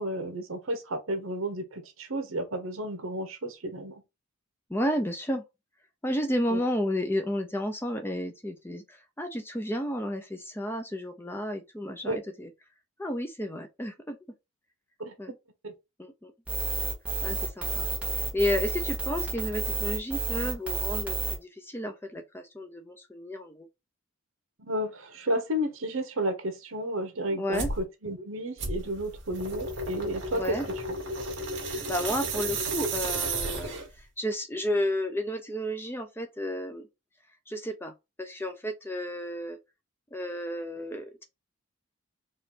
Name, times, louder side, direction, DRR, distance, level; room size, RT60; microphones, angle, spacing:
voice 1, 0.0-4.0 6.5-6.6 12.0-12.2 15.0-15.1 15.6-15.7 24.6-30.6 31.2-31.3, equal, 70° right, 1.1 m, -32 dB
voice 2, 4.7-5.4 6.0-12.5 13.0-14.2 15.2-15.3 16.0-16.3 17.2-23.7 27.3-27.7 30.3-30.7 31.6-36.9 37.5-37.9 38.2-39.6 40.1-41.2, equal, 10° left, 0.5 m, -32 dB
sound 1, 16.5-21.3, right 3 dB, 5° right, 1.5 m, -30 dB
sound 2, 27.5-27.8 28.6-34.0, right 2 dB, 55° right, 1.6 m, -33 dB
4.5 x 2.5 x 3.7 m
head